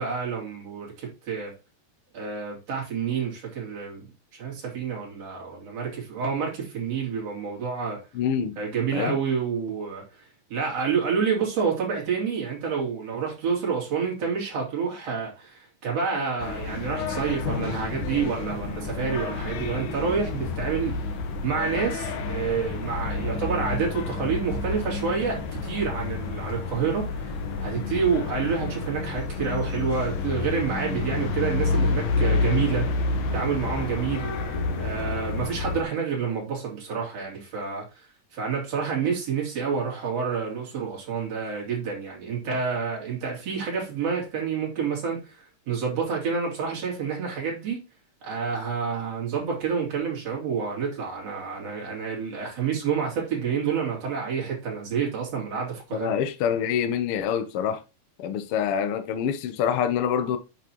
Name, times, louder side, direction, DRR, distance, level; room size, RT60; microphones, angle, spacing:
voice 1, 0.0-1.5 2.1-4.1 4.4-8.0 8.6-21.0 21.4-32.9 33.3-34.3 34.8-38.1 38.3-47.8 48.2-56.1, right 6 dB, 55° right, 3.6 m, -28 dB
voice 2, 8.1-8.6 8.9-9.1 55.9-57.8 58.2-60.4, left 8 dB, 65° left, 1.5 m, -26 dB
sound 1, 16.4-35.8, left 3 dB, 90° left, 2.5 m, -29 dB
8.8 x 6.0 x 3.0 m
omnidirectional pair, 3.3 m